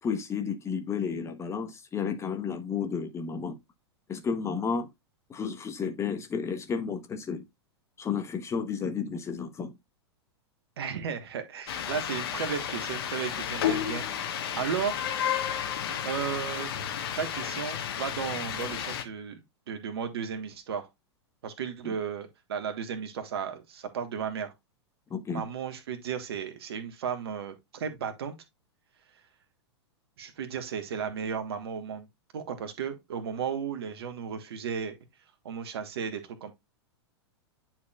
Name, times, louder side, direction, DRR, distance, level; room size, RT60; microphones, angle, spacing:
voice 1, 0.0-3.6 4.1-4.9 5.3-7.5 8.0-9.7 21.8-21.9 25.1-25.5, left 6 dB, 20° left, 1.1 m, -32 dB
voice 2, 10.8-15.0 16.0-16.7 17.2-20.9 21.4-24.5 25.3-28.3 30.2-32.1 32.3-35.0 35.4-36.5, right 7 dB, 65° right, 1.5 m, -34 dB
sound 1, 11.7-19.0, left 9 dB, 60° left, 1.4 m, -32 dB
10.5 x 4.5 x 2.4 m
figure-of-eight pair, 100°, 14 cm